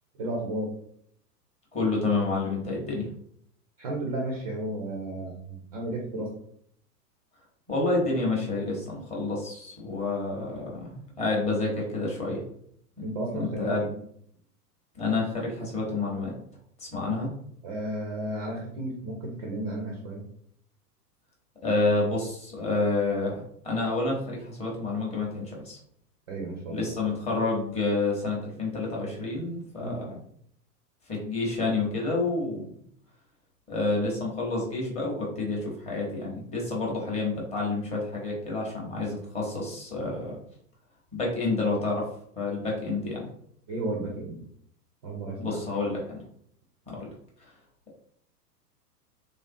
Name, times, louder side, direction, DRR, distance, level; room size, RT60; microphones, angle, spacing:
voice 1, 0.2-0.7 3.8-6.3 13.0-13.9 17.6-20.2 26.3-26.9 29.8-30.0 43.7-44.4 45.0-45.6, right 1 dB, 25° right, -1 dB, 0.4 m, -33 dB
voice 2, 1.7-3.1 7.7-12.4 13.3-13.8 14.9-16.3 16.8-17.3 21.6-25.8 26.7-30.2 31.1-32.7 33.7-40.4 41.1-42.0 42.4-43.3 45.4-46.2 46.9-47.1, left 3 dB, 15° left, -3 dB, 0.8 m, -29 dB
3.2 x 2.4 x 2.6 m, 0.66 s
figure-of-eight pair, 100°, 49 cm